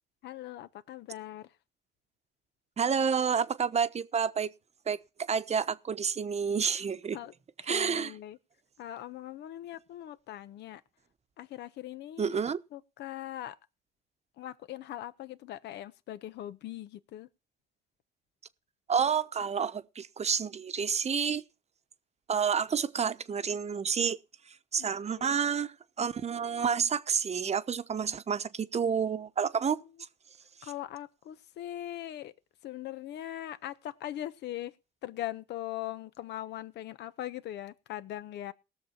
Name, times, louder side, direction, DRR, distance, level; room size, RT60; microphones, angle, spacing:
voice 1, 0.2-1.5 7.1-7.3 7.6-8.4 8.8-10.8 11.4-12.4 12.7-13.6 14.4-17.3 24.8-25.4 29.8-29.9 30.6-32.3 32.6-34.7 35.0-38.5, left 13 dB, 75° left, 1.1 m, -41 dB
voice 2, 2.8-4.5 4.9-7.2 7.7-8.1 12.2-12.6 18.9-21.4 22.3-24.2 24.5-29.8 30.6-30.7, right 6 dB, 40° right, 1.0 m, -29 dB
19.5 x 6.9 x 4.5 m
supercardioid pair, 75°, 18 cm